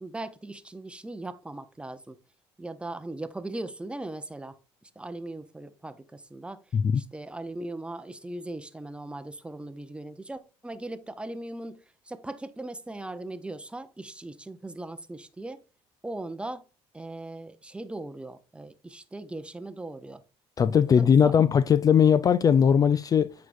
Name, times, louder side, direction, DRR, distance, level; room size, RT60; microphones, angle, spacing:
voice 1, 0.0-2.2 2.6-4.6 4.8-6.6 6.9-15.6 16.0-16.6 16.9-20.2 20.9-21.3, right 2 dB, 10° right, 0.7 m, -39 dB
voice 2, 20.6-23.3, left 7 dB, 35° left, 0.4 m, -20 dB
8.2 x 4.7 x 2.6 m
supercardioid pair, 95°, 11 cm